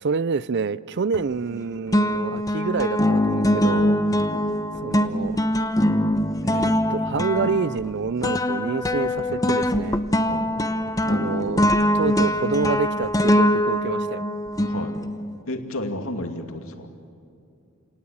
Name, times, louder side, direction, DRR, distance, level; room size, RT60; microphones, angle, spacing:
voice 1, 0.0-4.0 4.8-5.4 6.4-10.0 11.0-14.2, right 5 dB, 50° right, 18 dB, 0.5 m, -27 dB
sound 1, 1.1-1.6 1.9-15.3, left 1 dB, 15° left, 0.8 m, -23 dB
voice 2, 15.5-16.9, left 1 dB, 70° left, 5 dB, 2.4 m, -32 dB
28.5 x 18.5 x 8.7 m, 2.6 s
head